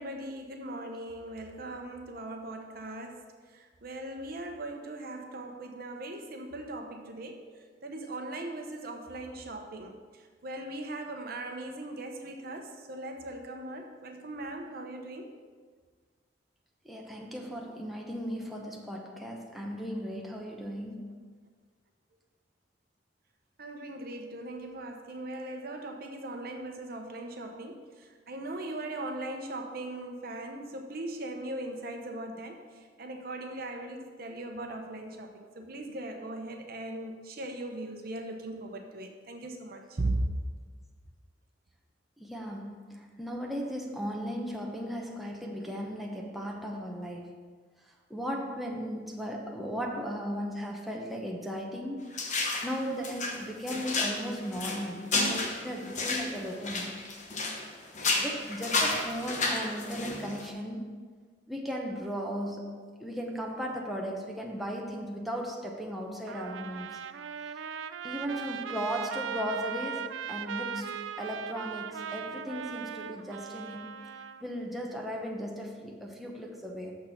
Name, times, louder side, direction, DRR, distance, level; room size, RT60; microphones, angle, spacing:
voice 1, 0.0-3.2 3.5-7.4 7.8-10.0 10.4-15.3 23.6-32.6 33.0-40.2, right 2 dB, 55° right, 3 dB, 0.9 m, -39 dB
voice 2, 16.8-21.1 42.2-47.4 48.1-52.2 52.6-56.9 58.1-60.9 61.5-67.0 68.0-74.0 74.4-77.0, equal, ahead, -1 dB, 0.9 m, -36 dB
sound 1, 52.1-52.7 53.0-57.7 57.9-60.5, left 3 dB, 40° left, 1.0 m, -31 dB
Trumpet, 66.3-74.4, right 7 dB, 85° right, 0.4 m, -39 dB
6.6 x 6.5 x 5.9 m, 1.5 s
head